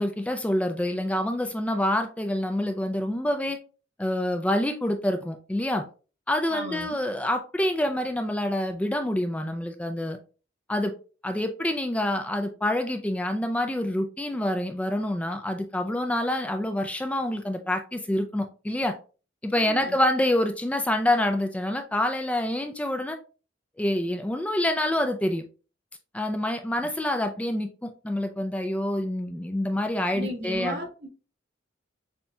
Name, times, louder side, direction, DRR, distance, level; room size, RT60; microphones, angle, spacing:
voice 1, 0.0-3.6 4.0-5.8 6.3-10.2 10.7-10.9 11.2-18.9 19.4-23.2 23.8-25.4 26.1-30.8, left 1 dB, 5° left, 6 dB, 0.3 m, -27 dB
voice 2, 6.5-7.0 19.5-20.1 30.1-31.1, equal, 60° right, -2 dB, 1.5 m, -35 dB
6.9 x 2.7 x 2.2 m, 0.36 s
head